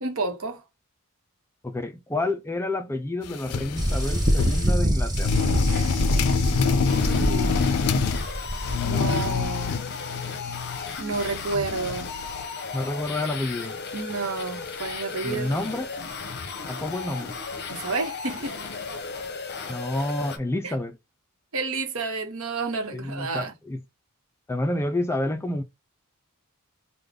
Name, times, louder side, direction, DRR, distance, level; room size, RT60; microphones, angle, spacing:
voice 1, 0.0-0.6 5.6-7.7 8.8-9.8 11.0-12.1 13.9-15.5 17.7-18.5 20.6-20.7 21.5-23.5, right 4 dB, 65° right, 1.0 m, -31 dB
voice 2, 1.6-5.4 12.7-13.7 15.2-15.9 16.7-17.4 19.7-21.0 22.9-23.8 24.5-25.6, left 1 dB, 10° left, 0.3 m, -29 dB
sound 1, 3.2-4.8 5.2-8.3 8.6-12.4, left 5 dB, 80° left, 0.4 m, -27 dB
sound 2, 3.8-9.6, equal, 20° right, 0.7 m, -25 dB
sound 3, 6.9-20.4, left 5 dB, 50° left, 0.7 m, -35 dB
3.4 x 2.2 x 3.6 m
head